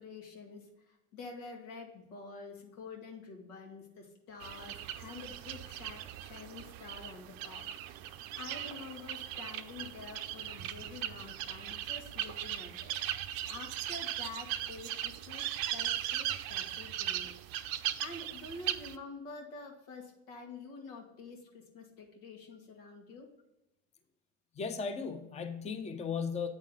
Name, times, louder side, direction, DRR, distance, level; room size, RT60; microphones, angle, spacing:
voice 1, 0.0-12.9 13.5-17.7 18.0-23.3, left 3 dB, 90° left, 1.6 m, -48 dB
sound 1, 4.4-19.0, right 12 dB, 55° right, 0.5 m, -38 dB
voice 2, 24.6-26.5, left 5 dB, 15° left, 0.6 m, -36 dB
8.4 x 3.7 x 3.7 m
supercardioid pair, 95°, 41 cm